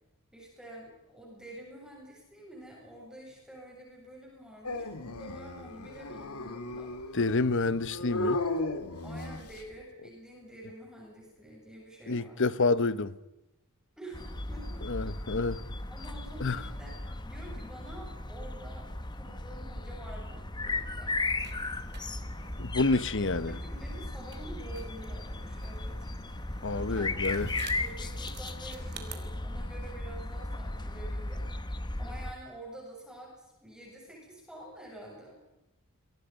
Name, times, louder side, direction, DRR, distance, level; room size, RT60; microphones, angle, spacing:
voice 1, 0.3-6.9 9.0-12.5 14.0-14.9 15.9-18.9 19.2-21.2 23.2-26.1 26.7-27.4 27.8-31.4 32.0-35.4, right 1 dB, 5° right, 7.9 m, -48 dB
Dog, 4.6-9.7, left 2 dB, 85° left, 2.3 m, -35 dB
voice 2, 7.1-8.4 12.1-13.1 14.9-15.6 16.4-16.6 22.6-23.5 26.6-27.5, left 3 dB, 55° left, 1.0 m, -28 dB
sound 1, 14.1-32.3, left 2 dB, 20° left, 1.2 m, -36 dB
sound 2, 21.4-29.2, right 3 dB, 50° right, 3.2 m, -48 dB
29.5 x 23.5 x 5.4 m
head